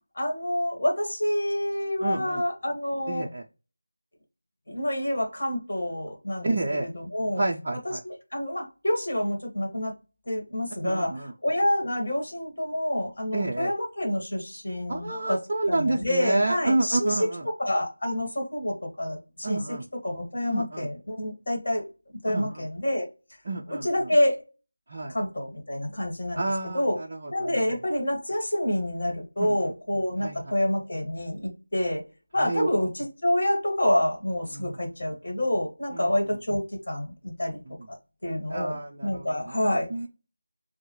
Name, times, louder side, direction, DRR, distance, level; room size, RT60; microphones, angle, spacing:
voice 1, 0.1-3.3 4.7-7.4 8.0-9.9 10.2-11.1 11.4-15.4 15.7-17.3 17.6-19.6 20.0-21.9 22.2-23.1 23.7-24.4 25.1-26.4 26.7-27.0 27.3-32.0 32.3-37.6 37.9-38.0 38.2-38.8 39.0-39.9, left 1 dB, 40° left, 1 dB, 1.4 m, -27 dB
voice 2, 2.0-2.4 3.1-3.4 6.4-6.9 7.4-8.0 10.8-11.3 13.3-13.7 14.9-17.4 19.4-19.8 20.5-20.9 22.3-22.7 23.5-23.9 24.9-25.1 26.4-27.5 29.4-29.7 30.2-30.5 32.4-32.7 34.5-34.7 35.9-36.1 38.5-40.1, right 2 dB, 30° right, -1 dB, 0.4 m, -29 dB
6.2 x 2.1 x 2.9 m, 0.32 s
figure-of-eight pair, 165°, 0 cm